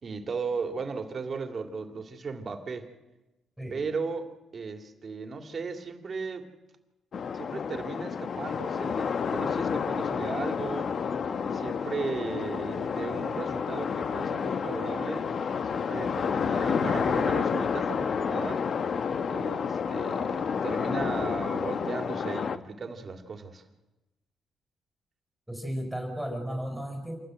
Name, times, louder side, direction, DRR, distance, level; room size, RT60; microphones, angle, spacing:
voice 1, 0.0-2.9 3.7-4.3 4.5-6.5 7.3-10.9 11.5-15.3 15.7-18.7 19.3-23.6, right 4 dB, 45° right, 5 dB, 2.7 m, -36 dB
voice 2, 3.6-3.9 25.5-27.2, equal, ahead, 4 dB, 5.5 m, -34 dB
sound 1, 7.1-22.6, left 6 dB, 50° left, 1.0 m, -30 dB
27.5 x 16.0 x 7.9 m, 1.1 s
cardioid pair, 90°, 0 cm